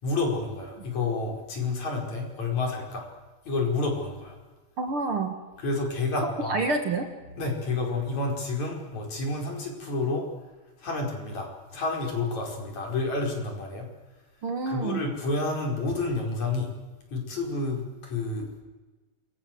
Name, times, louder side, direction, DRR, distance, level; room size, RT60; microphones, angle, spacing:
voice 1, 0.0-3.1 3.5-4.4 5.6-6.6 7.4-10.3 10.8-13.9 14.7-16.7 17.1-18.5, left 3 dB, 60° left, 1 dB, 6.3 m, -29 dB
voice 2, 4.8-5.4 6.2-7.1 14.4-15.0, right 3 dB, 45° right, 6 dB, 2.4 m, -28 dB
29.0 x 22.0 x 7.9 m, 1.2 s
omnidirectional pair, 3.7 m